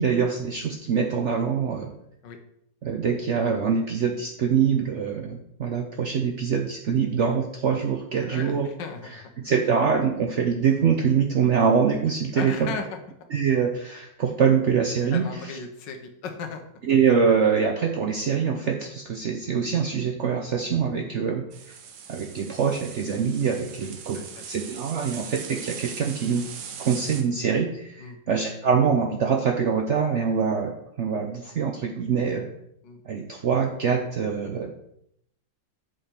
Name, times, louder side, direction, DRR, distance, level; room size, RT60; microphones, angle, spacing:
voice 1, 0.0-1.9 2.8-8.7 9.1-12.7 13.3-15.6 16.8-21.5 22.1-24.2 24.5-26.5 26.8-32.5 33.1-34.7, right 6 dB, 65° right, 3 dB, 0.7 m, -24 dB
voice 2, 8.1-9.2 12.3-13.0 15.1-16.6 23.7-23.9 24.1-24.2 28.0-28.2 32.8-33.0, left 5 dB, 80° left, 6 dB, 1.6 m, -36 dB
sound 1, 21.5-27.2, right 7 dB, 85° right, 1.6 m, -40 dB
7.4 x 5.2 x 4.4 m, 0.74 s
omnidirectional pair, 1.9 m